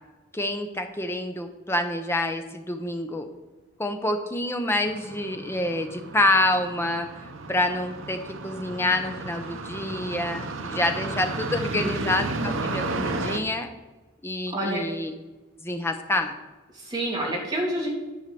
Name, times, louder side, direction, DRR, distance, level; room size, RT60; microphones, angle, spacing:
voice 1, 0.3-3.3 3.8-7.1 7.5-8.2 8.4-13.7 14.2-15.1 15.6-16.4, left 1 dB, 10° left, 6 dB, 0.7 m, -27 dB
sound 1, 4.9-13.4, right 2 dB, 75° right, 0.8 m, -33 dB
voice 2, 8.8-9.3 11.6-12.1 14.5-14.8 16.7-17.9, right 1 dB, 20° right, -3 dB, 2.5 m, -29 dB
10.5 x 4.7 x 6.9 m, 1.2 s
head